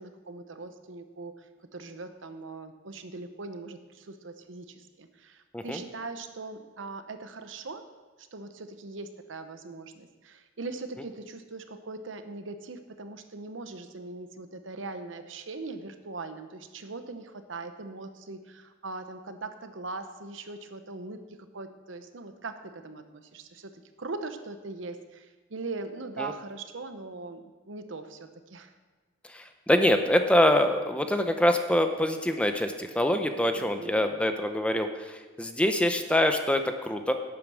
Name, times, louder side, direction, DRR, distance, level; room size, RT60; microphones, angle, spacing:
voice 1, 0.0-7.8 8.2-28.7 33.5-34.1, right 3 dB, 75° right, 9 dB, 0.9 m, -41 dB
voice 2, 29.3-37.1, left 1 dB, 5° left, 7 dB, 0.6 m, -25 dB
11.0 x 8.8 x 6.3 m, 1.3 s
head